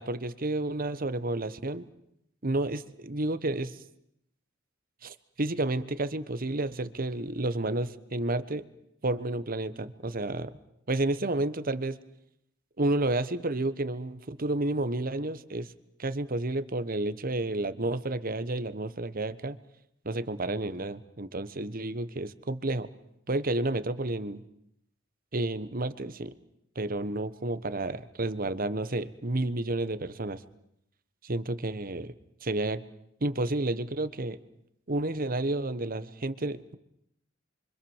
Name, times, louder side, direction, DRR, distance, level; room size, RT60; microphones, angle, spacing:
voice 1, 0.0-1.8 2.4-3.8 5.0-8.6 9.0-10.6 10.9-12.0 12.8-15.7 16.0-19.6 20.0-22.9 23.3-24.4 25.3-26.3 26.7-30.4 31.2-32.1 32.4-32.8 33.2-34.4 34.9-36.7, right 2 dB, 45° right, 14 dB, 1.2 m, -31 dB
28.0 x 25.5 x 7.3 m, 0.78 s
head